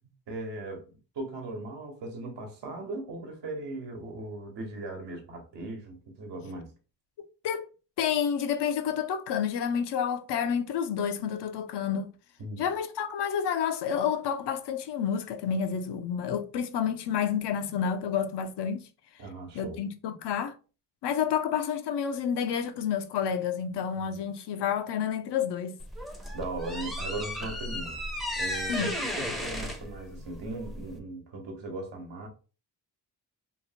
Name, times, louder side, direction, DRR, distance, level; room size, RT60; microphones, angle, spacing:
voice 1, 0.3-0.8 1.1-6.7 12.4-12.7 19.2-19.8 26.3-28.0 28.4-32.3, right 2 dB, 80° right, 1.1 m, -38 dB
voice 2, 8.0-12.1 12.6-18.8 19.5-20.6 21.0-25.8 28.7-28.9, left 8 dB, 70° left, 0.6 m, -29 dB
sound 1, 25.8-31.0, left 1 dB, ahead, 0.5 m, -34 dB
2.9 x 2.0 x 2.8 m
cardioid pair, 65°, 42 cm